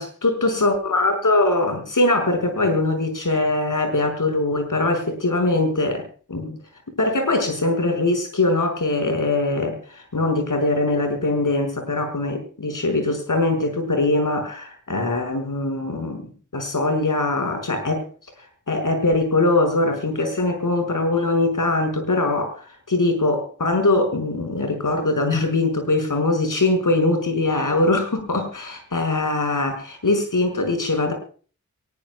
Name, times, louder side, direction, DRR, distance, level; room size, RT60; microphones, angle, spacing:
voice 1, 0.0-6.6 7.0-18.0 18.7-22.5 22.9-31.1, left 2 dB, 80° left, 6 dB, 5.6 m, -22 dB
23.5 x 20.5 x 2.3 m, 0.41 s
wide cardioid pair, 70°, 31 cm